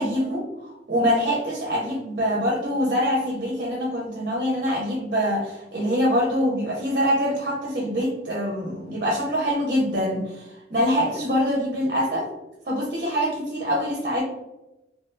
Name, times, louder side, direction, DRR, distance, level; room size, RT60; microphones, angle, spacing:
voice 1, 0.0-12.3 12.7-14.2, equal, 50° right, -2 dB, 0.5 m, -24 dB
2.5 x 2.2 x 2.5 m, 0.97 s
head